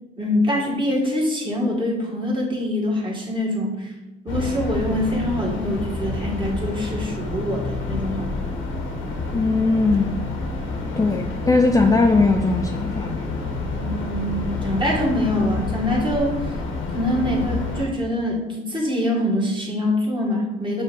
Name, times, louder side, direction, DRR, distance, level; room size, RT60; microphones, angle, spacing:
voice 1, 0.2-3.9 4.2-8.3 11.0-11.2 13.8-16.6 16.9-20.8, left 1 dB, 25° right, -3 dB, 1.9 m, -24 dB
sound 1, 4.3-17.9, left 3 dB, 85° left, 1.3 m, -28 dB
voice 2, 9.3-10.1 11.0-13.3, left 3 dB, 15° left, 3 dB, 0.4 m, -19 dB
6.6 x 3.2 x 4.6 m, 1.1 s
cardioid pair, 90°, 20 cm